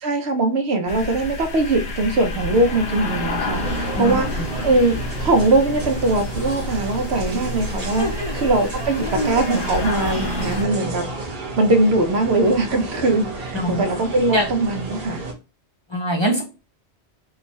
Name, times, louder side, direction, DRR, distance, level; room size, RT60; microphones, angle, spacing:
voice 1, 0.0-11.0 11.6-15.2, right 2 dB, 75° right, 1.0 m, -21 dB
sound 1, 0.9-10.6, left 2 dB, 65° left, 1.0 m, -29 dB
sound 2, 3.5-15.3, right 3 dB, 50° right, 1.0 m, -32 dB
voice 2, 8.0-8.3 9.0-9.3 13.5-13.8 14.3-14.5 15.9-16.4, equal, 30° left, 0.7 m, -23 dB
3.6 x 2.3 x 4.0 m
omnidirectional pair, 1.1 m